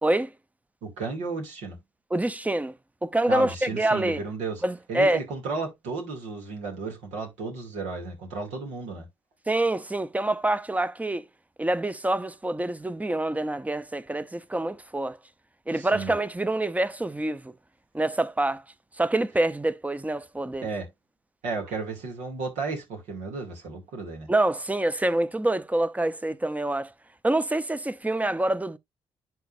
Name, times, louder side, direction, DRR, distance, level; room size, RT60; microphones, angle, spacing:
voice 1, 0.8-1.8 3.3-4.6 4.9-9.1 15.7-16.1 20.6-20.9 21.4-24.3, right 3 dB, 75° right, 2.6 m, -33 dB
voice 2, 2.1-2.7 3.0-4.2 4.6-5.2 9.5-11.2 11.6-15.2 15.7-17.5 17.9-18.6 19.0-20.7 24.3-26.9 27.2-28.8, right 1 dB, 10° right, 0.8 m, -26 dB
10.5 x 4.1 x 2.6 m
hypercardioid pair, 45°, 12 cm